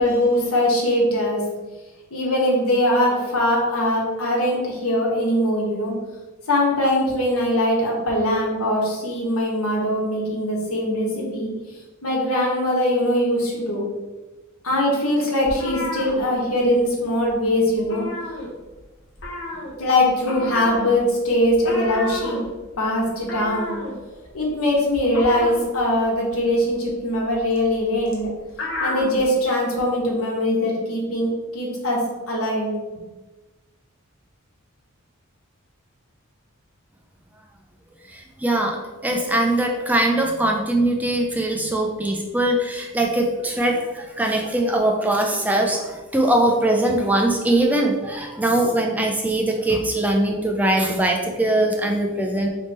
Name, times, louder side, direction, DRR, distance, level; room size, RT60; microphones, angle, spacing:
voice 1, 0.0-1.4 2.1-5.9 6.5-11.5 12.0-13.9 14.6-18.1 19.8-22.4 22.8-23.8 24.3-28.3 28.8-32.7, left 1 dB, 85° left, -3 dB, 1.3 m, -21 dB
sound 1, 15.4-16.9 17.2-17.4 17.7-18.8 19.2-29.3, left 1 dB, 60° left, 1.0 m, -32 dB
voice 2, 38.1-38.8 39.0-52.5, right 1 dB, 5° right, 1 dB, 0.4 m, -21 dB
3.3 x 3.1 x 4.2 m, 1.2 s
head